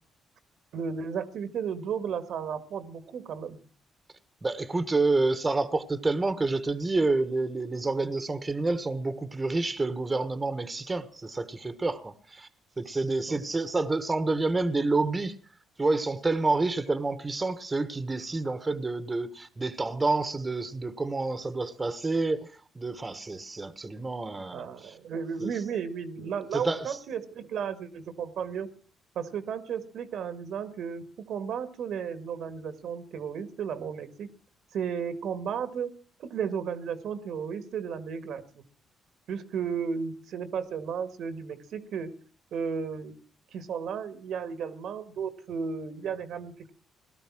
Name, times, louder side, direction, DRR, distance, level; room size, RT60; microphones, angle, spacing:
voice 1, 0.7-3.6 13.3-13.4 24.5-28.7 29.1-34.4 34.7-35.9 36.2-38.6 39.3-42.2 42.5-43.2 43.5-46.7, right 7 dB, 70° right, 1.8 m, -34 dB
voice 2, 4.4-12.5 12.8-15.3 15.8-22.5 22.7-24.9 25.4-25.5 26.5-27.0, right 3 dB, 20° right, 1.4 m, -28 dB
18.0 x 12.5 x 6.1 m
cardioid pair, 90°, 0 cm